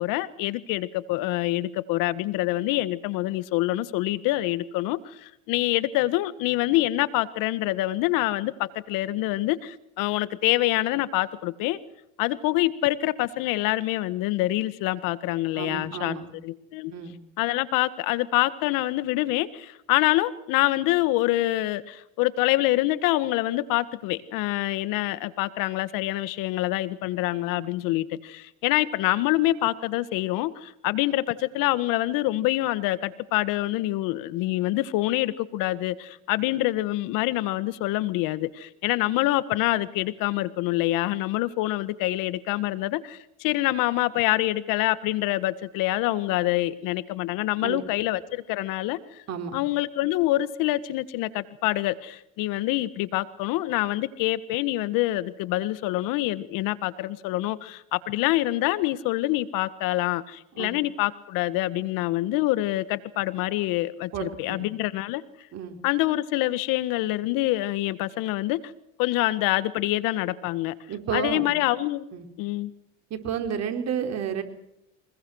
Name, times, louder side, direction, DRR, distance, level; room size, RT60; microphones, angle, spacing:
voice 1, 0.0-11.8 12.2-16.1 16.4-16.9 17.4-49.2 49.5-65.2 65.8-68.6 69.0-70.7 71.1-72.1 72.4-72.7, left 17 dB, 70° left, 15 dB, 1.6 m, -26 dB
voice 2, 15.5-16.3 16.9-17.2 47.6-47.8 49.3-49.6 60.6-60.7 64.1-64.7 65.5-65.8 70.9-71.5 72.1-72.3 73.1-74.4, right 7 dB, 50° right, 5 dB, 4.4 m, -31 dB
24.5 x 21.5 x 6.4 m, 0.82 s
supercardioid pair, 95°, 35 cm